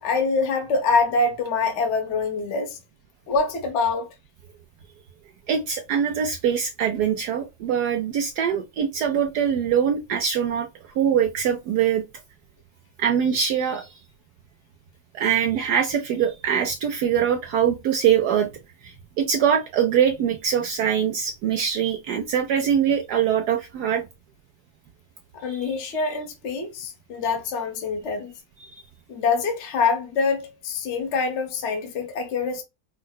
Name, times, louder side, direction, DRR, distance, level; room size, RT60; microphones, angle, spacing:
voice 1, 0.0-2.8 3.3-4.1 25.3-28.3 29.1-32.6, left 4 dB, 45° left, 1.0 m, -25 dB
voice 2, 5.5-10.7 11.0-12.0 13.0-13.9 15.1-18.5 18.8-24.1 25.5-25.7 28.6-28.8, right 8 dB, 75° right, 0.9 m, -23 dB
4.8 x 2.1 x 2.2 m
omnidirectional pair, 2.2 m